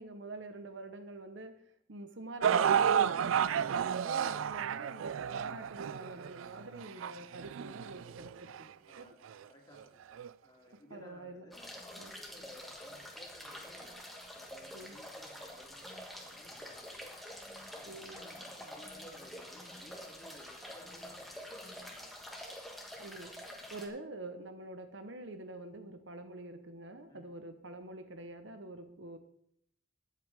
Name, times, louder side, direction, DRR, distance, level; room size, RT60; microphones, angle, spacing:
voice 1, 0.0-1.6 1.9-9.1 10.9-11.4 12.0-12.1 14.7-15.0 17.9-18.2 23.0-23.4 23.7-29.2, right 2 dB, 70° right, 8 dB, 1.1 m, -46 dB
sound 1, 2.4-8.6 9.3-9.4 10.2-10.3, right 8 dB, 90° right, 0.4 m, -31 dB
voice 2, 8.9-9.2 9.5-17.2 17.7-22.2 27.1-27.4, left 1 dB, 20° left, -1 dB, 2.7 m, -57 dB
sound 2, 11.5-23.9, equal, ahead, 1.6 m, -47 dB
21.0 x 7.7 x 3.6 m, 0.70 s
head